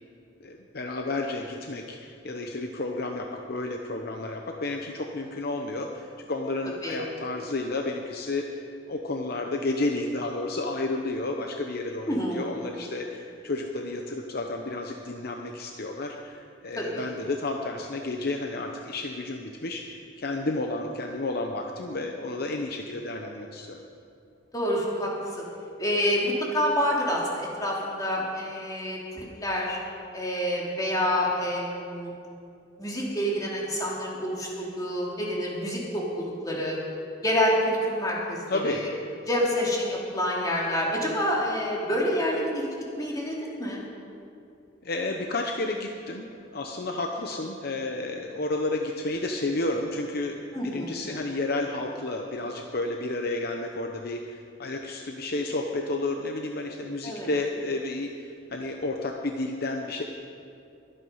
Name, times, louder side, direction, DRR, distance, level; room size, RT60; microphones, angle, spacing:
voice 1, 0.4-8.6 8.9-23.8 38.5-38.9 44.8-50.4 50.6-60.0, left 2 dB, 55° left, 3 dB, 0.9 m, -31 dB
voice 2, 12.1-12.4 16.7-17.1 24.5-25.1 25.4-25.5 25.8-29.8 30.1-32.1 32.8-36.8 37.2-38.9 39.3-42.7 43.0-43.8 50.5-51.0 57.0-57.3, equal, 20° left, -4 dB, 2.9 m, -27 dB
22.5 x 9.0 x 5.6 m, 2.6 s
head